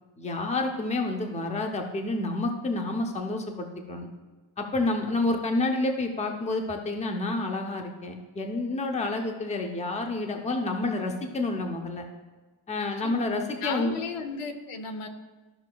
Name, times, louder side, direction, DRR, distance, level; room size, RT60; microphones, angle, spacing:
voice 1, 0.2-4.1 4.6-12.1 12.7-13.9, left 2 dB, 15° left, 4 dB, 0.5 m, -29 dB
voice 2, 12.8-13.3 13.6-15.1, left 5 dB, 85° left, 7 dB, 0.9 m, -35 dB
13.0 x 5.6 x 2.3 m, 1.3 s
wide cardioid pair, 180°, 49 cm